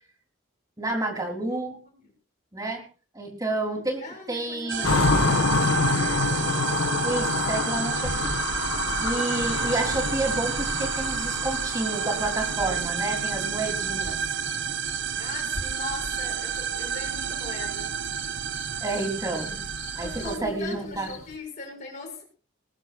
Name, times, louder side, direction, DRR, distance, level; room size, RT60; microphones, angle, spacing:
voice 1, 0.8-1.8 2.5-2.8 3.1-5.0 7.0-8.7 9.0-14.2 18.8-19.6 20.0-21.1, right 2 dB, 15° right, 1 dB, 3.6 m, -30 dB
voice 2, 1.5-2.1 3.6-6.1 15.2-18.0 20.0-22.2, left 3 dB, 35° left, 0 dB, 7.0 m, -40 dB
sound 1, 4.7-20.4, right 7 dB, 60° right, 0.9 m, -30 dB
sound 2, 4.8-15.0 15.3-16.2 16.5-16.6 17.0-17.9 18.1-18.3 18.5-21.3, left 3 dB, 80° left, 1.5 m, -28 dB
21.5 x 19.5 x 2.5 m, 0.35 s
head